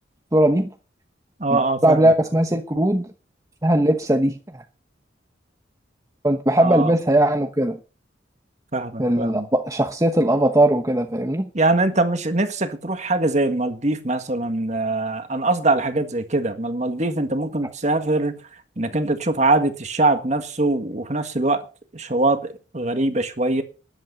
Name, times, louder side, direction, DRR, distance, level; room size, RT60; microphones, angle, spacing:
voice 1, 0.3-0.7 1.5-3.1 3.6-4.6 6.2-7.8 9.0-11.5, right 1 dB, 15° right, 1.1 m, -19 dB
voice 2, 1.4-2.1 6.6-6.9 8.7-9.5 11.5-18.4 18.8-21.6 21.9-23.6, right 2 dB, 40° right, 1.7 m, -22 dB
13.0 x 11.0 x 5.4 m
head